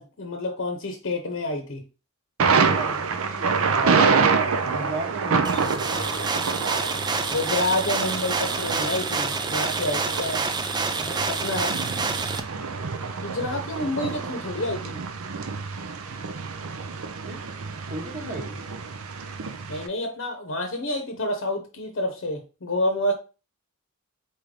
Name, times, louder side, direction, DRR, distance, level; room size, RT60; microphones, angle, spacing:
voice 1, 0.0-1.8 7.3-10.5 11.3-11.7 13.2-15.0 19.7-23.1, left 1 dB, 60° left, 0.8 m, -28 dB
Thunder, 2.4-19.9, right 5 dB, 70° right, 0.6 m, -27 dB
voice 2, 2.5-4.1 4.6-6.2 11.0-11.4 17.3-17.4 17.9-18.6, right 1 dB, 35° right, 1.0 m, -36 dB
sound 1, 5.4-12.4, right 4 dB, 20° right, 0.3 m, -28 dB
4.3 x 3.8 x 3.2 m
head